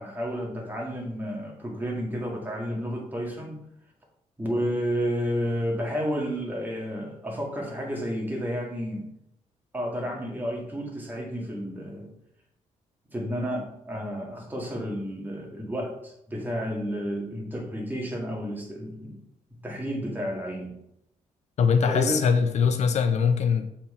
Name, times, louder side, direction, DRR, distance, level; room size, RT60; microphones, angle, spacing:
voice 1, 0.0-3.6 4.4-9.1 9.7-12.1 13.1-19.2 19.6-20.7 21.9-22.3, equal, 15° right, 1.7 m, -31 dB
voice 2, 21.6-23.7, left 6 dB, 65° left, 0.5 m, -22 dB
7.3 x 4.4 x 3.6 m
cardioid pair, 125°, 13 cm